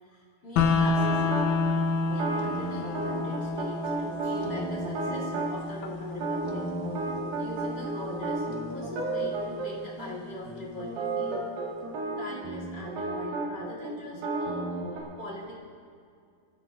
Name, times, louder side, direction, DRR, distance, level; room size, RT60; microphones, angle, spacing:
voice 1, 0.0-1.6 2.1-6.7 7.4-11.4 12.2-15.6, left 1 dB, 30° left, -4 dB, 3.2 m, -42 dB
sound 1, 0.6-10.5, left 4 dB, 70° left, 2.0 m, -31 dB
sound 2, 1.0-1.5 2.1-5.5 6.1-9.7 10.0-10.1 10.5-15.0, right 3 dB, 85° right, 3.8 m, -32 dB
24.0 x 13.0 x 2.6 m, 2.3 s
omnidirectional pair, 4.1 m